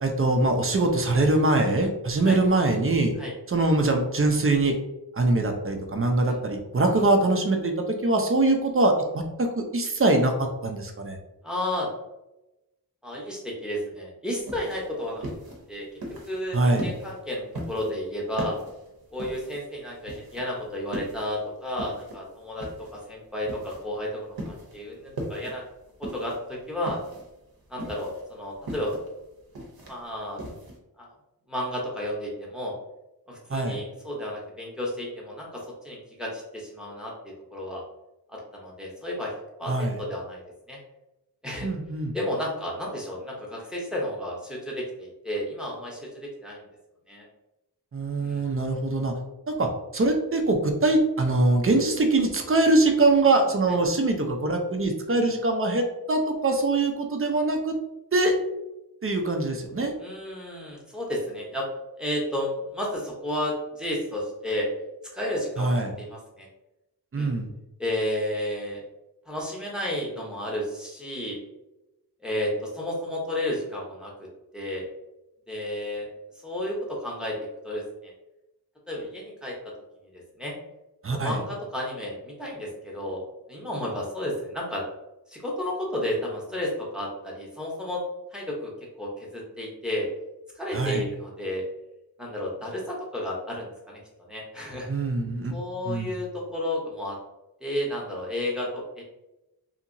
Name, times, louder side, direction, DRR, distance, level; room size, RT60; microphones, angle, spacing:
voice 1, 0.0-3.1 3.5-4.7 5.1-7.7 8.0-11.2 16.5-16.9 33.5-33.8 39.7-40.0 41.6-42.1 47.9-49.1 49.5-57.7 58.1-58.4 59.0-59.9 65.6-65.9 67.1-67.5 81.0-81.4 90.7-91.1 94.9-95.5 95.9-96.1, right 2 dB, 35° right, 3 dB, 0.5 m, -23 dB
voice 2, 11.4-11.9 13.0-15.2 15.7-15.9 16.2-18.6 19.1-25.6 26.0-26.3 26.7-27.0 27.7-28.9 29.9-30.4 31.0-31.1 31.5-32.7 33.3-37.8 38.3-40.4 40.7-40.8 41.4-41.7 42.1-46.6 47.1-47.2 48.2-48.5 53.7-53.8 55.2-55.3 60.0-61.7 62.0-64.7 65.1-66.5 67.2-67.3 67.8-68.8 69.3-71.4 72.2-74.1 74.5-74.9 75.5-76.1 76.4-77.4 77.6-78.1 78.9-79.5 80.1-80.5 81.1-83.2 83.5-84.8 85.3-88.0 88.3-88.7 89.0-90.1 90.5-91.6 92.2-94.0 94.3-94.9 95.5-97.2 97.6-99.0, left 1 dB, ahead, -3 dB, 0.8 m, -32 dB
sound 1, 14.4-30.8, right 1 dB, 65° right, 0.8 m, -39 dB
2.8 x 2.7 x 2.5 m, 0.95 s
wide cardioid pair, 90°, 40 cm